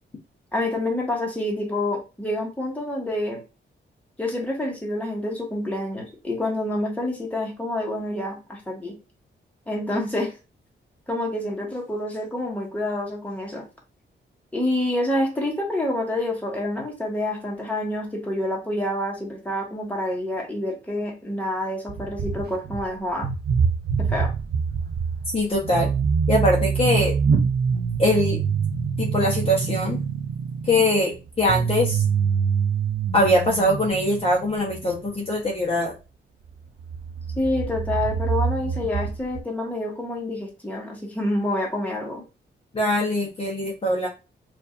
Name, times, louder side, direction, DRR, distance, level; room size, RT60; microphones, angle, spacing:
voice 1, 0.5-3.4 4.2-8.9 9.7-10.3 11.1-13.6 14.5-23.3 24.0-24.3 37.4-42.2, left 1 dB, 10° left, -1 dB, 1.1 m, -27 dB
sound 1, 21.9-22.9 23.2-35.3 36.5-36.6 36.8-39.4, right 6 dB, 55° right, 0.5 m, -25 dB
voice 2, 25.3-25.9 26.3-27.1 28.0-28.4 29.0-30.0 30.7-32.0 33.1-35.9 42.7-44.1, left 1 dB, 30° left, -3 dB, 0.8 m, -22 dB
4.6 x 2.5 x 2.5 m, 0.29 s
wide cardioid pair, 160°, 19 cm